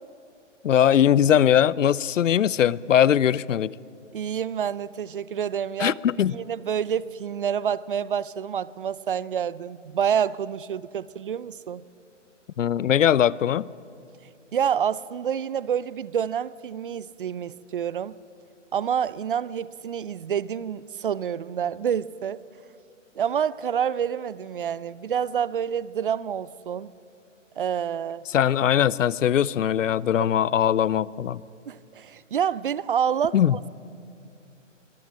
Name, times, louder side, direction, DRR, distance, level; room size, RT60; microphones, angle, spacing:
voice 1, 0.6-3.7 5.8-6.4 12.6-13.7 28.3-31.4 33.3-33.5, left 10 dB, 80° left, 0.6 m, -20 dB
voice 2, 4.1-6.0 6.3-11.8 14.5-18.2 18.7-22.4 23.2-26.9 27.6-28.2 30.2-30.3 31.7-33.7, right 8 dB, 45° right, 0.5 m, -28 dB
23.0 x 17.0 x 7.5 m
hypercardioid pair, 155°, 37 cm